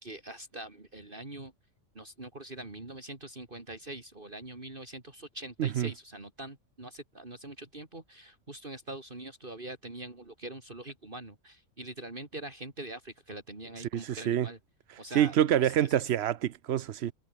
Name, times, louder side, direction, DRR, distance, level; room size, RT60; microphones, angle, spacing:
voice 1, 0.0-1.5 1.9-14.6 15.0-16.1, right 2 dB, 40° right, 3.4 m, -43 dB
voice 2, 5.6-5.9 13.9-14.5 15.1-17.1, right 11 dB, 60° right, 0.9 m, -26 dB
omnidirectional pair, 1.4 m